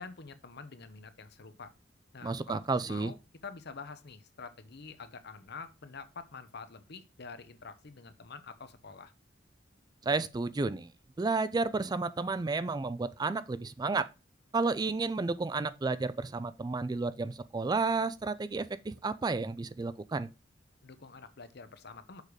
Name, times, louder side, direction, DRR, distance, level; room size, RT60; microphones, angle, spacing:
voice 1, 0.0-1.7 2.1-3.2 3.4-9.1 20.8-22.2, left 4 dB, 60° left, 0.8 m, -47 dB
voice 2, 2.2-3.1 10.0-10.9 11.2-14.1 14.5-20.3, right 3 dB, 20° right, 0.3 m, -31 dB
6.6 x 4.8 x 5.1 m
head